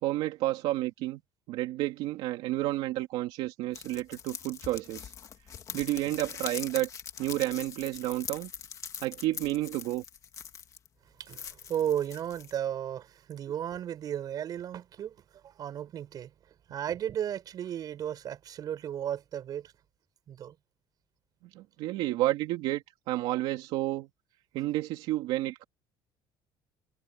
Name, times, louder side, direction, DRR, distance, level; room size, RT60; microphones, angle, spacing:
voice 1, 0.0-1.2 1.5-5.1 5.7-6.9 7.2-8.5 9.0-10.0 21.5-24.1 24.5-25.6, right 16 dB, 75° right, 2.6 m, -31 dB
sound 1, 3.7-10.9 11.2-12.6, left 8 dB, 35° left, 2.0 m, -42 dB
voice 2, 11.2-15.1 15.4-16.3 16.7-19.7 20.3-20.5, right 10 dB, 45° right, 6.8 m, -34 dB
cardioid pair, 145°, 9 cm